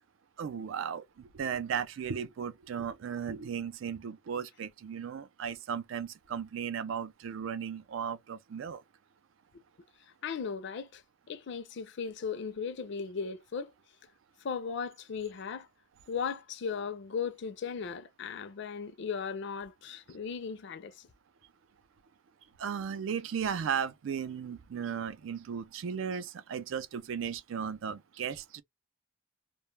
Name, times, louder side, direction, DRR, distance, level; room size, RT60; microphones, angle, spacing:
voice 1, 0.4-8.8 22.6-28.6, right 7 dB, 80° right, 0.4 m, -36 dB
voice 2, 10.2-11.0 11.3-13.7 14.4-15.7 16.1-21.1, left 6 dB, 65° left, 0.4 m, -37 dB
2.2 x 2.1 x 3.1 m
head